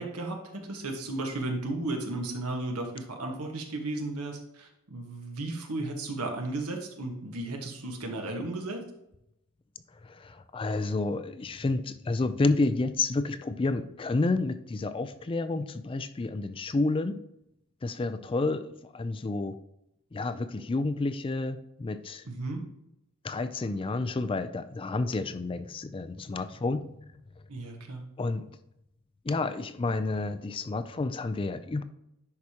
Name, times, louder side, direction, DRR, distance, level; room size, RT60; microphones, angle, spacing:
voice 1, 0.0-8.8 22.2-22.6 27.5-28.1, right 2 dB, 85° right, 2 dB, 1.4 m, -34 dB
voice 2, 10.0-17.2 17.8-19.6 20.1-22.2 23.2-27.1 28.2-28.5 29.2-31.8, left 3 dB, 25° left, 11 dB, 0.3 m, -30 dB
10.5 x 4.9 x 2.9 m, 0.82 s
head